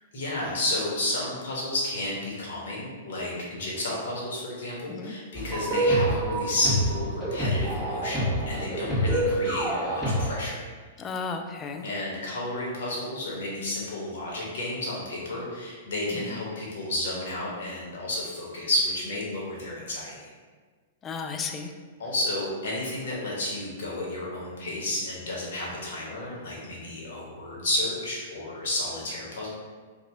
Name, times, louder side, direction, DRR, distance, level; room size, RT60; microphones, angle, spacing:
voice 1, 0.1-10.6 11.8-20.3 22.0-29.5, left 1 dB, 65° left, -4 dB, 1.2 m, -31 dB
sound 1, 5.4-10.3, right 1 dB, ahead, 1.3 m, -26 dB
voice 2, 11.0-11.9 16.2-16.4 21.0-21.7, left 5 dB, 25° left, 5 dB, 0.3 m, -34 dB
2.9 x 2.6 x 3.9 m, 1.5 s
figure-of-eight pair, 110°, 0 cm